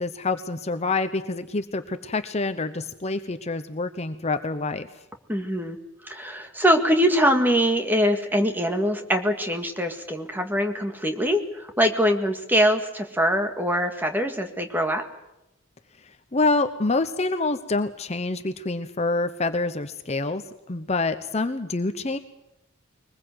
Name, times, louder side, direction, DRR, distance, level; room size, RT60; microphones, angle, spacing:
voice 1, 0.0-4.9 16.3-20.4 20.7-22.2, left 3 dB, 35° left, 10 dB, 0.8 m, -26 dB
voice 2, 5.3-5.8 6.0-15.0, equal, 10° right, 5 dB, 1.9 m, -23 dB
23.0 x 20.5 x 7.9 m, 0.90 s
head